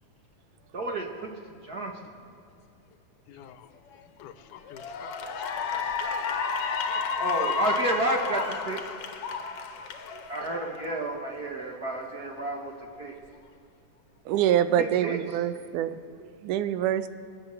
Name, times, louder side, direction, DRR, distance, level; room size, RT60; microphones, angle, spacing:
voice 1, 0.7-2.0 7.2-8.8 10.3-13.2 14.8-15.2, right 2 dB, 50° right, 1 dB, 1.2 m, -31 dB
voice 2, 3.3-3.7 4.1-6.0 6.5-7.0, left 10 dB, 90° left, 11 dB, 2.3 m, -48 dB
Cheering / Applause, 3.9-4.2 4.7-11.2, left 5 dB, 60° left, 1.8 m, -31 dB
voice 3, 14.3-17.1, right 10 dB, 85° right, 12 dB, 2.2 m, -26 dB
24.5 x 8.4 x 6.8 m, 2.5 s
omnidirectional pair, 3.5 m